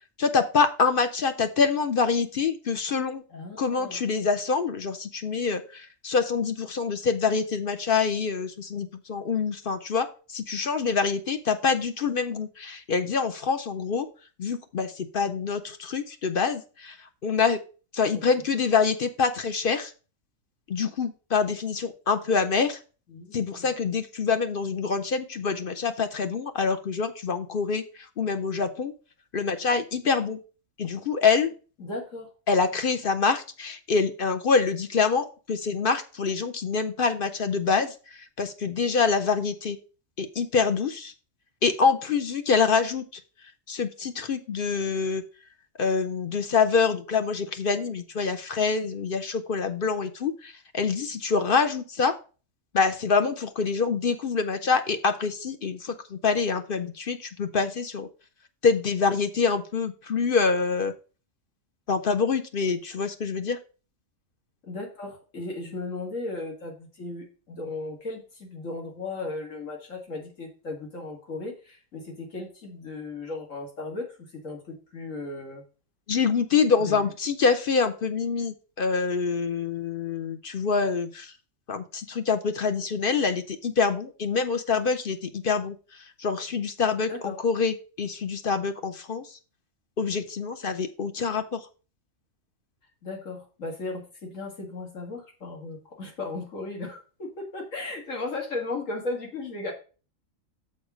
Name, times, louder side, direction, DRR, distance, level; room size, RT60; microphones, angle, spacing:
voice 1, 0.2-3.2 3.6-14.1 14.4-17.6 17.9-19.9 20.7-22.8 23.3-28.9 29.3-30.4 30.8-31.5 32.5-39.8 40.2-41.1 41.6-43.2 43.7-45.2 45.8-52.2 52.7-58.1 58.6-60.9 61.9-63.6 76.1-81.3 81.7-89.4 90.0-91.7, left 5 dB, 50° left, 9 dB, 0.8 m, -26 dB
voice 2, 3.3-4.0 18.1-18.2 23.1-23.7 31.8-32.3 64.6-74.2 74.4-75.6 76.8-77.1 87.1-87.3 93.0-99.7, left 2 dB, 75° left, 1 dB, 2.6 m, -36 dB
6.6 x 4.6 x 6.1 m, 0.35 s
omnidirectional pair, 1.4 m